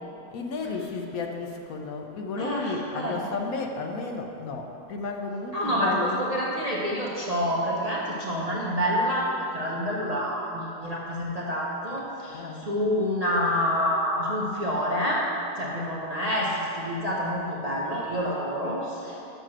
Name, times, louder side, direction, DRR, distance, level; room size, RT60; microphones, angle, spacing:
voice 1, 0.3-6.3 11.3-11.4 12.3-12.7, left 3 dB, 70° left, 3 dB, 1.1 m, -33 dB
voice 2, 2.4-3.2 5.5-15.2 15.6-19.2, equal, 35° right, -5 dB, 0.6 m, -27 dB
6.6 x 6.2 x 6.1 m, 3.0 s
omnidirectional pair, 1.7 m